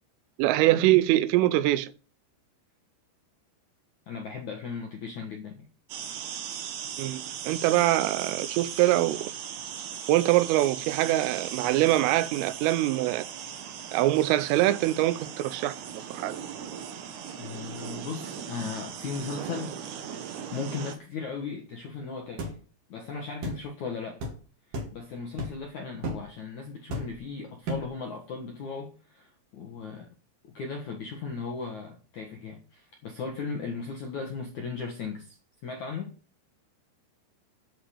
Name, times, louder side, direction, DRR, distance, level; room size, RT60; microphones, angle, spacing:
voice 1, 0.4-1.9 7.0-9.3 10.1-13.3 13.9-15.7 16.1-16.3, right 15 dB, 85° right, 3.3 m, -24 dB
voice 2, 4.1-5.7 17.4-20.2 20.5-22.6 22.9-24.2 24.7-30.1 30.5-35.4 35.6-36.2, left 5 dB, 65° left, 1.8 m, -37 dB
sound 1, 5.9-21.0, right 8 dB, 65° right, 3.0 m, -38 dB
sound 2, 22.4-22.6 23.4-23.6 24.2-24.4 24.7-25.0 25.4-25.6 26.0-26.3 26.9-27.2 27.6-27.9, equal, 45° right, 3.7 m, -33 dB
11.5 x 6.3 x 8.3 m
omnidirectional pair, 5.8 m